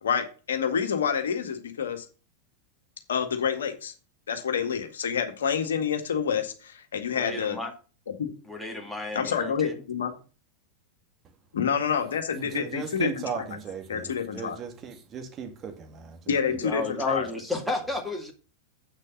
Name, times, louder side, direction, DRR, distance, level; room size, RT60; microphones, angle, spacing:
voice 1, 0.0-2.1 3.1-3.9 4.3-7.6 8.2-8.3 9.1-10.1 11.5-13.4 13.9-14.6 16.3-17.3, left 7 dB, 65° left, 1.8 m, -28 dB
voice 2, 7.1-7.7 8.5-9.8 16.5-18.3, left 2 dB, ahead, 2.2 m, -32 dB
voice 3, 12.3-16.2, right 6 dB, 25° right, 2.1 m, -37 dB
8.4 x 6.3 x 5.4 m
figure-of-eight pair, 90°, 0 cm